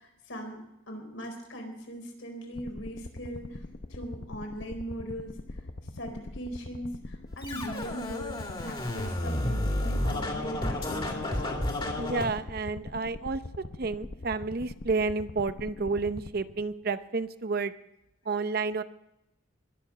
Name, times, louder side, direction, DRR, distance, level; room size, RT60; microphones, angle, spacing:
voice 1, 0.0-3.6 3.9-5.6 5.9-11.6, equal, 75° left, 2 dB, 4.4 m, -40 dB
sound 1, 2.5-16.9, left 2 dB, 55° left, 0.8 m, -43 dB
Scratching (performance technique), 7.4-12.3, left 1 dB, 25° left, 2.3 m, -31 dB
voice 2, 12.0-13.4 13.8-17.7 18.3-18.8, right 4 dB, 50° right, 12 dB, 0.7 m, -30 dB
21.0 x 7.1 x 7.0 m, 0.86 s
head